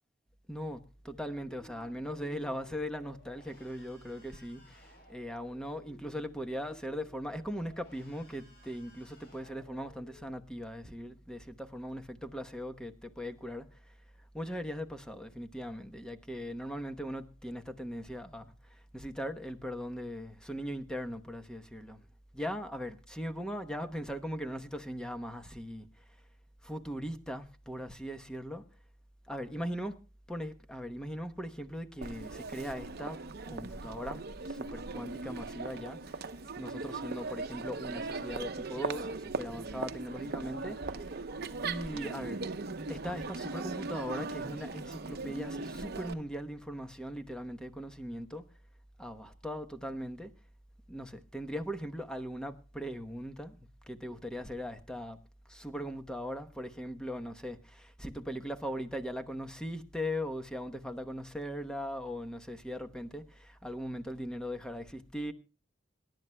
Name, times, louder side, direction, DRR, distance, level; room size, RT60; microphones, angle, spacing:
voice 1, 0.5-13.9 14.3-22.0 22.3-25.9 26.6-28.7 29.3-30.0 30.3-33.2 33.5-36.2 36.6-41.1 41.6-42.4 42.9-48.4 49.0-50.3 50.9-53.6 53.9-55.2 55.5-65.3, equal, 5° left, 0.9 m, -39 dB
sound 1, 1.1-10.3, equal, 55° left, 5.2 m, -58 dB
Crowd, 32.0-46.1, right 3 dB, 55° right, 0.8 m, -39 dB
26.0 x 11.0 x 2.2 m
head